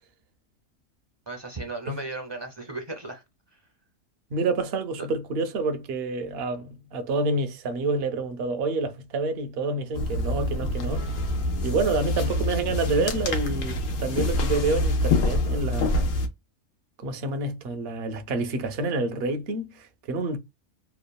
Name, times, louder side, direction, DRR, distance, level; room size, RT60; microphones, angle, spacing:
voice 1, 1.3-3.2 3.5-3.6, right 2 dB, 35° right, 0.4 m, -36 dB
voice 2, 4.3-11.1 11.6-16.0 17.0-20.4, right 3 dB, 60° right, 0.7 m, -28 dB
sound 1, 9.9-16.3, left 1 dB, 80° left, 1.1 m, -26 dB
3.0 x 2.3 x 2.2 m
omnidirectional pair, 1.3 m